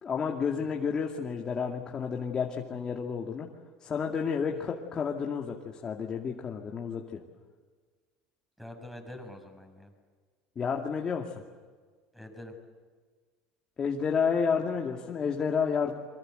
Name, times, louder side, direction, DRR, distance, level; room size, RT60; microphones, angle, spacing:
voice 1, 0.0-3.5 3.8-7.2 10.6-11.4 13.8-15.9, left 6 dB, 30° left, 0 dB, 2.4 m, -30 dB
voice 2, 8.6-9.9 12.1-12.5, left 1 dB, 5° right, 5 dB, 6.3 m, -45 dB
28.0 x 24.0 x 8.0 m, 1.5 s
supercardioid pair, 115°, 2 cm